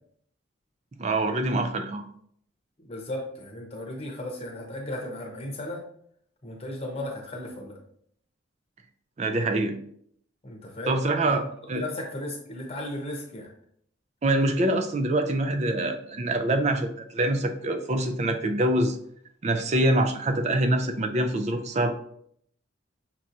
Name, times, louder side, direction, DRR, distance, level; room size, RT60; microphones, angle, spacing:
voice 1, 1.0-2.0 9.2-9.7 10.9-11.8 14.2-19.0 19.4-21.9, right 1 dB, 35° right, 7 dB, 0.3 m, -25 dB
voice 2, 2.8-5.8 6.4-7.8 10.4-11.0 11.2-11.3 11.7-13.5, left 1 dB, 30° left, 0 dB, 0.8 m, -35 dB
5.9 x 2.9 x 2.5 m, 0.66 s
head